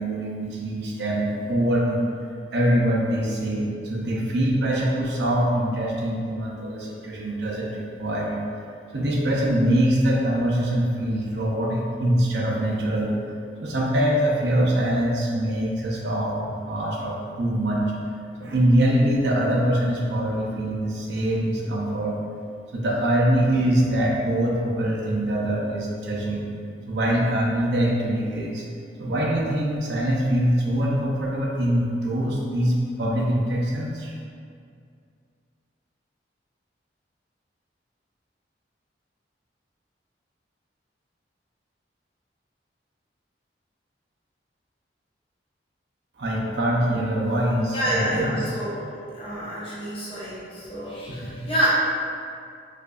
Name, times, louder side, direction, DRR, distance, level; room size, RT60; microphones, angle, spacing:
voice 1, 0.0-2.1 2.5-8.4 8.9-13.2 13.6-17.9 18.4-22.2 22.7-26.6 26.9-28.6 29.0-34.1 46.2-48.4 51.1-51.5, right 1 dB, 70° right, -3 dB, 0.6 m, -23 dB
voice 2, 47.7-48.8 49.1-51.7, equal, 30° left, -9 dB, 0.9 m, -28 dB
4.6 x 2.6 x 2.3 m, 2.3 s
head